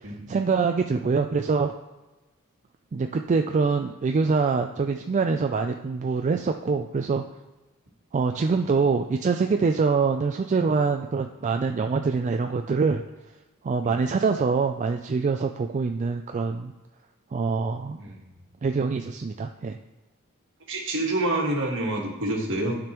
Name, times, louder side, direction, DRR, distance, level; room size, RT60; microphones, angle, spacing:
voice 1, 0.0-1.7 2.9-7.2 8.1-13.0 13.6-16.7 17.3-18.0 18.6-19.8, right 4 dB, 35° right, 5 dB, 0.3 m, -24 dB
voice 2, 20.7-22.8, right 1 dB, 60° right, 0 dB, 1.6 m, -27 dB
12.0 x 5.1 x 3.0 m, 1.1 s
head